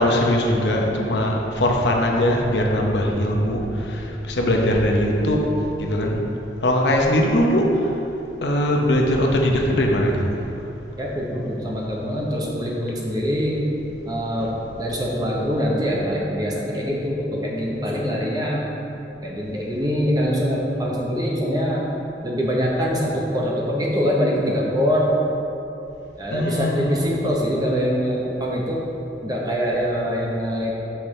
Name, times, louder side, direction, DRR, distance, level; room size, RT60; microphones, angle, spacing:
voice 1, 0.0-6.2 6.6-7.9 8.4-10.2 26.3-27.1, left 1 dB, 80° left, 0 dB, 0.8 m, -20 dB
voice 2, 2.7-3.6 4.5-4.6 11.0-13.7 14.1-18.6 19.2-21.9 22.2-25.1 26.2-28.9 29.2-30.7, equal, 20° right, -3 dB, 0.8 m, -24 dB
6.6 x 5.7 x 3.2 m, 2.9 s
head